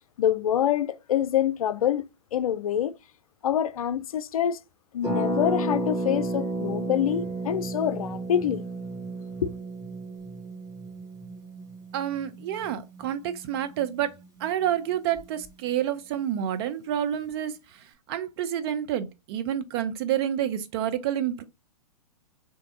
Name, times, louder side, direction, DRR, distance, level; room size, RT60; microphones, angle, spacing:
voice 1, 0.2-2.1 2.3-2.9 3.4-4.6 4.9-8.6 9.4-9.5, left 10 dB, 65° left, 0.4 m, -26 dB
Harp, 5.0-14.6 14.9-15.0 15.2-15.5, right 2 dB, 15° right, 2.0 m, -33 dB
voice 2, 11.9-14.1 14.4-21.4, right 10 dB, 40° right, 0.6 m, -29 dB
3.4 x 2.7 x 3.8 m
figure-of-eight pair, 115°, 19 cm